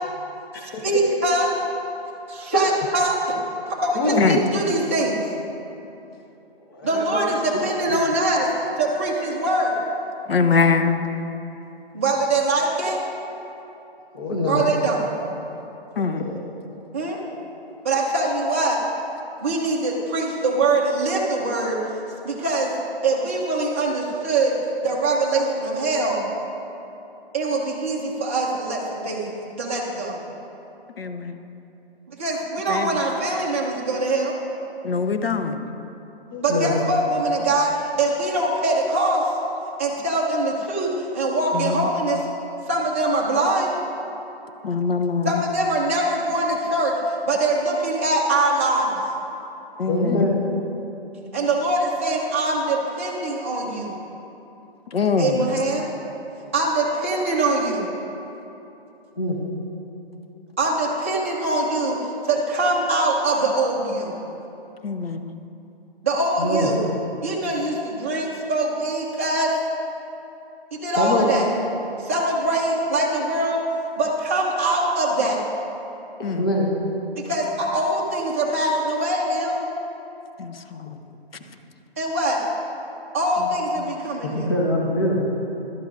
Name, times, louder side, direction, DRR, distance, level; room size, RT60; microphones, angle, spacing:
voice 1, 0.5-1.5 2.3-3.4 3.7-5.2 6.8-8.5 8.8-9.8 11.9-13.0 14.5-15.0 16.9-17.2 17.8-18.8 19.4-21.8 22.2-22.7 23.0-24.6 24.8-26.2 27.3-29.3 29.6-30.2 32.1-34.3 36.4-39.3 39.8-42.2 42.7-43.7 45.2-47.0 47.2-49.0 51.3-53.9 55.2-55.9 56.5-57.8 60.6-62.0 62.2-64.1 66.0-66.8 67.2-69.5 70.7-71.5 72.0-73.6 74.0-75.4 77.2-79.6 82.0-82.4 83.1-84.5, right 2 dB, 15° right, -5 dB, 0.7 m, -23 dB
voice 2, 3.9-4.3 6.7-7.3 7.5-7.6 7.9-8.0 14.1-14.6 16.2-16.4 36.3-36.8 49.8-50.4 59.2-59.4 66.4-66.7 71.0-71.3 76.4-76.7 84.2-85.3, left 1 dB, 20° left, -2 dB, 0.9 m, -23 dB
voice 3, 10.3-11.1 16.0-16.2 31.0-31.5 32.7-33.0 34.8-35.6 41.5-41.9 44.6-45.4 49.8-50.3 54.9-55.5 64.8-65.4 76.2-76.5 80.4-81.0 83.4-83.5 83.9-84.0, left 5 dB, 65° left, 7 dB, 0.8 m, -23 dB
14.5 x 12.0 x 2.5 m, 2.9 s
hypercardioid pair, 170°, 31 cm